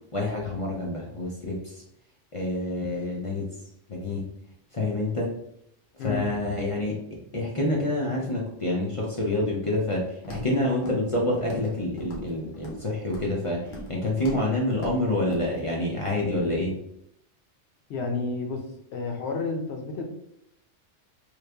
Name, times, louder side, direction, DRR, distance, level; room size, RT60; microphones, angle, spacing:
voice 1, 0.1-1.8 2.3-3.5 3.9-4.2 4.7-5.3 6.0-7.0 7.3-16.7, left 1 dB, 45° left, -3 dB, 0.4 m, -27 dB
Walk footsteps, 10.2-10.5 10.8-11.1 11.4-11.7 12.0-12.8 13.1-13.3 13.7-13.9 14.2-14.4 14.7-15.0 15.3-15.4, equal, 90° left, 1.2 m, -39 dB
voice 2, 17.9-18.6 18.9-20.0, left 3 dB, 65° left, 3 dB, 0.9 m, -30 dB
3.2 x 2.4 x 3.3 m, 0.76 s
omnidirectional pair, 1.3 m